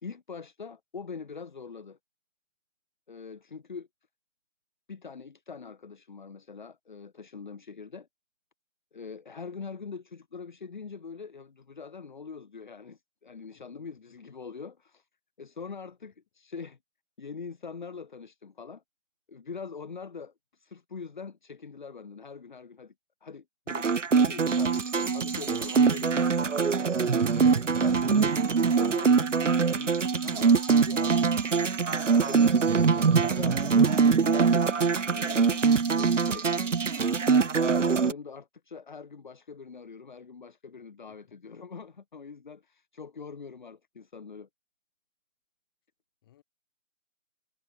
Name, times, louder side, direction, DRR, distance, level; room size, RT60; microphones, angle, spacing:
voice 1, 0.0-2.0 3.1-3.9 4.9-8.1 8.9-15.1 15.4-16.8 17.2-18.8 19.3-22.9 23.2-28.4 28.8-31.3 32.1-36.5 37.3-44.5, left 5 dB, 35° left, 2.9 m, -43 dB
sound 1, 23.7-38.1, right 5 dB, 65° right, 1.1 m, -23 dB
voice 2, 30.9-31.8 41.1-41.2 46.2-46.4, left 13 dB, 15° left, 7.8 m, -56 dB
figure-of-eight pair, 165°, 40 cm